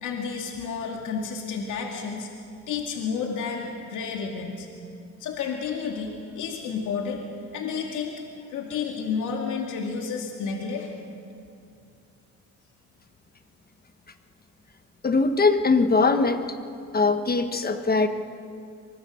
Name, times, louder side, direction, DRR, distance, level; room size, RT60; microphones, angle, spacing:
voice 1, 0.0-2.3 2.7-4.7 5.2-7.2 7.5-10.9, left 5 dB, 80° left, 1 dB, 2.3 m, -31 dB
voice 2, 15.0-16.5 16.9-18.1, left 3 dB, 30° left, 8 dB, 1.4 m, -21 dB
23.5 x 22.0 x 6.5 m, 2.5 s
cardioid pair, 90°, 30 cm